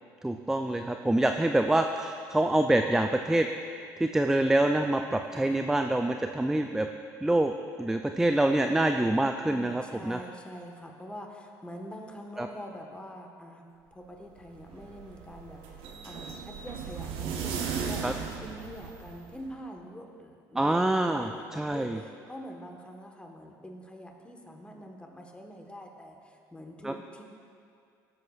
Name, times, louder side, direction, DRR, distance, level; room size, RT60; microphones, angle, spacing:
voice 1, 0.2-3.5 4.0-6.9 7.2-7.5 7.8-10.2 12.4-12.5 18.0-18.1 20.5-22.0 26.8-26.9, right 1 dB, 5° right, 6 dB, 0.4 m, -26 dB
voice 2, 9.5-18.0 18.4-27.2, equal, 10° left, 2 dB, 1.3 m, -45 dB
sound 1, 14.4-19.4, right 6 dB, 70° right, 1.0 m, -36 dB
16.0 x 7.8 x 2.4 m, 2.4 s
supercardioid pair, 80°, 9 cm